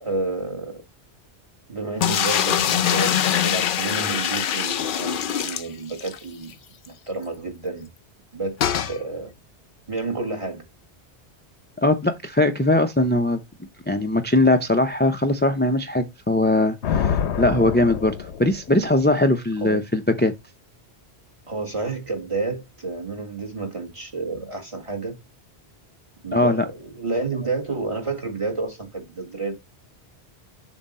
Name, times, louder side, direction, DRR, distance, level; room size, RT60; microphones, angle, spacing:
voice 1, 0.0-0.8 1.7-6.5 7.1-7.9 8.3-8.6 8.9-9.3 9.9-10.6 19.6-19.8 21.5-25.1 26.2-29.5, right 3 dB, 30° right, 1.8 m, -30 dB
sound 1, 2.0-6.2 6.5-6.6 6.8-6.9 8.6-9.0, left 9 dB, 55° left, 0.7 m, -23 dB
voice 2, 11.8-13.4 13.9-18.1 18.4-20.3 26.3-26.6, left 2 dB, 15° left, 0.4 m, -20 dB
Thunder, 16.8-19.0, left 8 dB, 80° left, 1.0 m, -26 dB
7.2 x 2.7 x 5.4 m
omnidirectional pair, 1.1 m